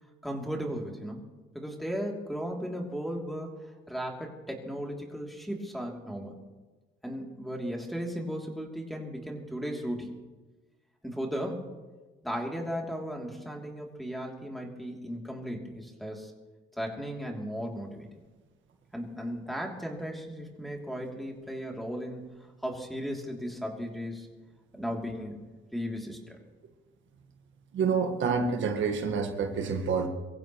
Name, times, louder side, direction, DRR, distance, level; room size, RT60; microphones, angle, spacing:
voice 1, 0.2-1.3 1.5-6.3 7.0-10.2 11.0-11.7 12.2-16.3 16.8-18.1 18.9-24.3 24.7-25.4 25.7-26.4, equal, ahead, -1 dB, 3.0 m, -36 dB
voice 2, 27.7-30.1, right 5 dB, 70° right, 4 dB, 1.6 m, -28 dB
24.0 x 15.5 x 3.1 m, 1.2 s
cardioid pair, 90°, 20 cm